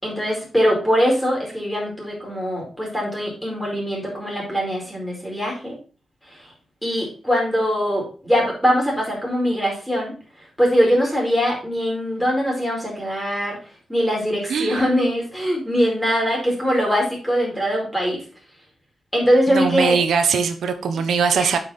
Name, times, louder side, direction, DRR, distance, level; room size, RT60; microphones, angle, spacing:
voice 1, 0.0-5.7 6.8-10.1 10.6-13.6 13.9-18.2 19.1-20.0 21.3-21.5, equal, ahead, -3 dB, 4.8 m, -22 dB
voice 2, 14.5-15.1 19.5-21.6, right 6 dB, 85° right, 8 dB, 1.0 m, -21 dB
8.4 x 5.8 x 4.3 m, 0.37 s
wide cardioid pair, 110°, 0 cm